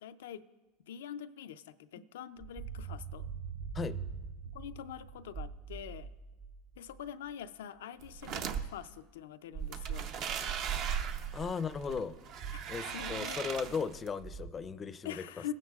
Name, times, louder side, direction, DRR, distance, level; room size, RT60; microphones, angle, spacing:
voice 1, 0.0-0.4 0.8-3.3 4.5-6.1 6.8-10.1 12.5-12.6 12.9-13.4 15.0-15.5, left 10 dB, 90° left, 11 dB, 0.4 m, -44 dB
sound 1, 2.4-7.5 11.8-14.5, right 6 dB, 80° right, 2.3 m, -44 dB
sound 2, 8.0-8.6 9.5-14.1, right 8 dB, 55° right, 0.7 m, -37 dB
voice 2, 11.3-12.2 12.7-15.5, left 5 dB, 25° left, 14 dB, 0.5 m, -37 dB
20.0 x 9.5 x 2.4 m, 1.2 s
supercardioid pair, 120°, 0 cm